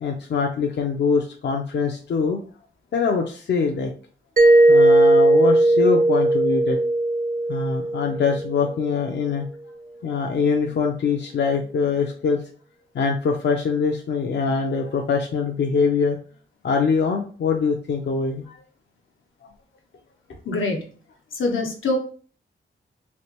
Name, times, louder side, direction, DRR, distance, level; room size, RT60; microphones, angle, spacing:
voice 1, 0.0-2.4 2.9-3.9 4.7-6.8 7.5-9.5 10.0-12.4 12.9-16.2 16.6-18.6, left 5 dB, 60° left, 2 dB, 0.5 m, -23 dB
Mallet percussion, 4.4-9.0, right 2 dB, 45° right, 0.4 m, -17 dB
voice 2, 20.4-20.9 21.3-22.0, left 2 dB, 90° left, 1 dB, 1.0 m, -24 dB
3.2 x 2.9 x 2.9 m, 0.41 s
wide cardioid pair, 150°, 20 cm